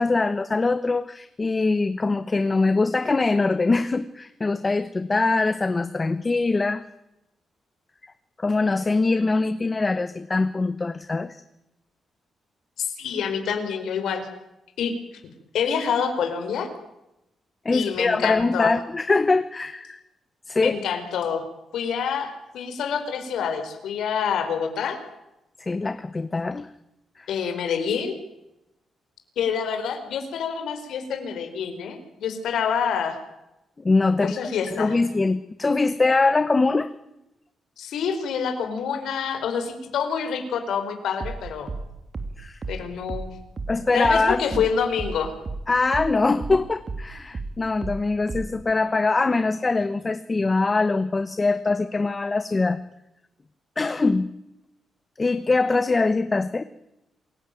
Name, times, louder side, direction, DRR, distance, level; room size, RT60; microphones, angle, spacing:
voice 1, 0.0-6.8 8.0-8.1 8.4-11.4 17.6-20.0 20.5-20.7 25.6-26.7 27.2-27.3 33.8-34.3 34.7-36.9 42.4-42.6 43.7-44.6 45.7-52.8 53.8-54.3 55.2-56.6, left 3 dB, 20° left, 12 dB, 1.1 m, -23 dB
voice 2, 12.8-14.3 14.8-14.9 15.5-16.7 17.7-18.7 20.6-21.5 21.7-25.0 27.3-28.1 29.4-33.2 34.2-34.9 37.8-41.7 42.7-43.3 43.9-45.3, left 7 dB, 85° left, 6 dB, 5.0 m, -27 dB
sound 1, 41.2-46.1 46.4-48.6, right 3 dB, 30° right, 2.5 m, -33 dB
27.5 x 16.5 x 9.3 m, 0.89 s
cardioid pair, 135°, 0 cm